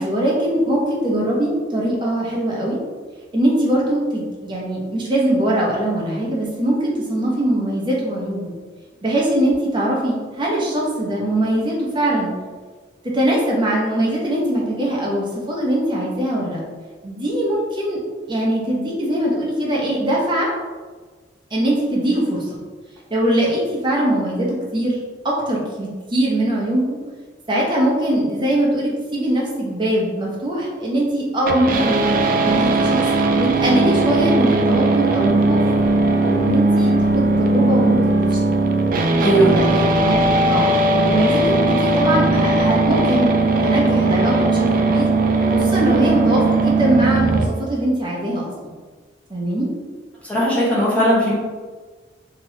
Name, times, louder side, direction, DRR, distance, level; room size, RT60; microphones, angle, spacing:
voice 1, 0.0-2.8 3.3-8.5 9.0-12.3 13.0-16.6 17.0-18.0 18.3-20.5 21.5-22.6 23.1-25.0 25.2-27.0 27.5-32.0 32.3-33.0 33.3-35.6 36.1-38.5 39.5-43.3 43.6-45.1 45.5-48.7 49.3-49.7, right 1 dB, 25° right, -3 dB, 0.8 m, -21 dB
sound 1, 31.5-47.5, right 2 dB, 50° right, 0.3 m, -18 dB
voice 2, 39.2-39.6 50.2-51.3, right 1 dB, 5° left, -8 dB, 1.0 m, -17 dB
3.1 x 2.9 x 2.8 m, 1.4 s
head